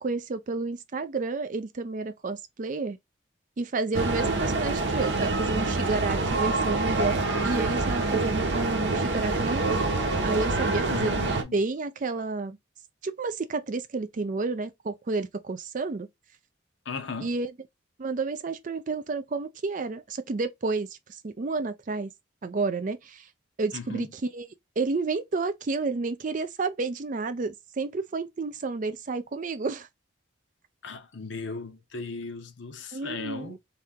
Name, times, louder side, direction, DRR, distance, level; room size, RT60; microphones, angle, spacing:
voice 1, 0.0-3.0 3.6-9.9 10.2-12.6 13.0-16.1 17.2-17.5 18.0-21.0 21.2-22.1 22.4-23.3 23.6-24.5 24.8-29.9 32.9-33.6, right 3 dB, 40° right, 0.4 m, -30 dB
sound 1, 3.9-11.4, right 2 dB, 65° right, 0.9 m, -26 dB
voice 2, 10.9-11.5 16.8-17.4 23.7-24.1 30.8-33.6, left 4 dB, 70° left, 0.8 m, -37 dB
3.3 x 2.8 x 3.6 m
head